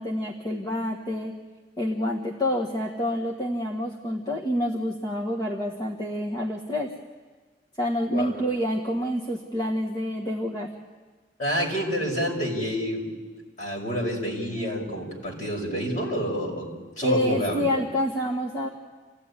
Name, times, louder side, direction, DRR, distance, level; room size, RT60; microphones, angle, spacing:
voice 1, 0.0-1.3 1.8-6.9 7.8-10.7 17.0-18.7, left 1 dB, 25° left, -1 dB, 1.7 m, -27 dB
voice 2, 11.4-13.1 13.6-17.6, equal, 45° left, 0 dB, 5.8 m, -28 dB
28.5 x 16.0 x 9.9 m, 1.4 s
head